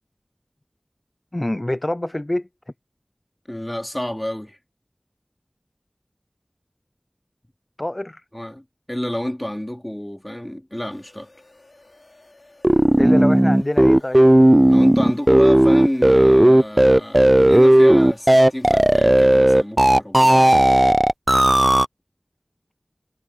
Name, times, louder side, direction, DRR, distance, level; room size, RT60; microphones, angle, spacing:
voice 1, 1.3-2.5 7.8-8.2 13.0-14.2, left 1 dB, 35° left, 0.3 m, -25 dB
voice 2, 3.5-4.6 8.3-11.3 14.6-20.5, left 1 dB, 20° left, 3.3 m, -29 dB
sound 1, 10.9-19.4, left 2 dB, 75° left, 5.9 m, -53 dB
sound 2, 12.6-21.9, right 1 dB, 30° right, 0.4 m, -13 dB
wide cardioid pair, 40°, 0 cm